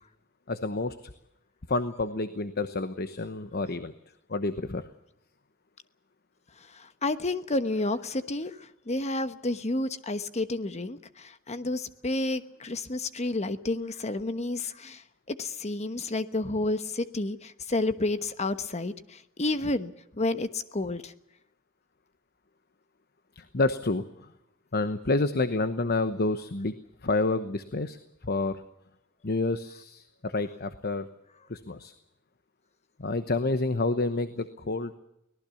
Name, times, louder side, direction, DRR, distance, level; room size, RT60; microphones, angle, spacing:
voice 1, 0.5-1.1 1.7-3.9 4.3-4.8 23.4-24.3 24.7-26.8 27.0-28.6 29.2-31.1 31.5-31.9 33.0-35.0, left 2 dB, 50° left, 11 dB, 1.0 m, -29 dB
voice 2, 6.6-15.0 15.3-21.1, left 2 dB, 35° left, 11 dB, 1.2 m, -30 dB
24.0 x 18.5 x 7.1 m, 0.83 s
head